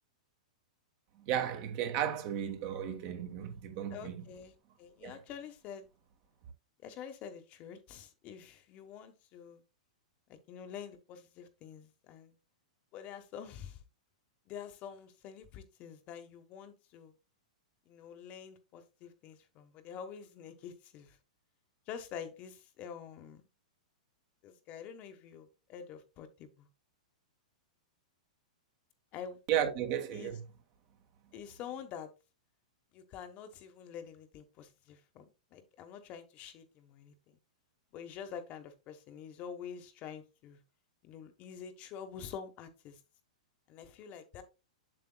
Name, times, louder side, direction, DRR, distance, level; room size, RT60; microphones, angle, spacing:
voice 1, 1.3-4.2 5.0-5.1 29.5-30.4, right 10 dB, 45° right, 1.4 m, -34 dB
voice 2, 3.9-5.9 6.8-9.6 10.3-12.3 12.9-13.8 14.5-17.1 17.9-21.2 21.9-23.4 24.4-26.7 29.1-29.4 30.1-30.4 31.3-32.1 32.9-37.4 37.9-40.6 41.0-43.0 43.7-44.4, left 8 dB, 35° left, 1.0 m, -47 dB
7.8 x 6.7 x 2.2 m
hypercardioid pair, 140°, 4 cm